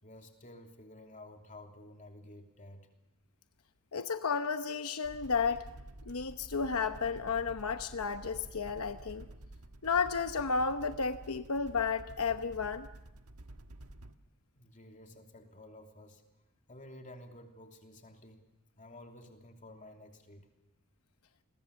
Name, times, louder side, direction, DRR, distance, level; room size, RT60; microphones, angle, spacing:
voice 1, 0.0-2.9 14.5-16.2 16.7-18.4 18.8-20.5, left 1 dB, 35° left, 3 dB, 3.0 m, -52 dB
voice 2, 3.9-5.7 6.1-9.3 9.8-12.9, left 5 dB, 80° left, 8 dB, 0.9 m, -32 dB
sound 1, 5.0-14.1, right 1 dB, 85° right, 1.4 m, -50 dB
29.5 x 21.5 x 7.0 m, 0.93 s
head